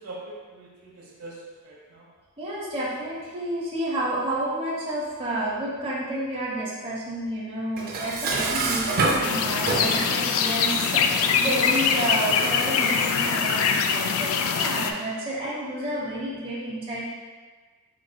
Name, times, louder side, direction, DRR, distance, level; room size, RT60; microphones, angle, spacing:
voice 1, 0.0-2.1, right 2 dB, 90° right, -4 dB, 1.0 m, -42 dB
voice 2, 2.4-17.1, right 1 dB, 25° right, -7 dB, 0.9 m, -30 dB
Dishes pots and pans, 7.8-10.2, right 3 dB, 40° right, 0.5 m, -26 dB
sound 1, 9.2-14.9, left 6 dB, 65° left, 0.3 m, -23 dB
4.7 x 4.3 x 2.2 m, 1.4 s
head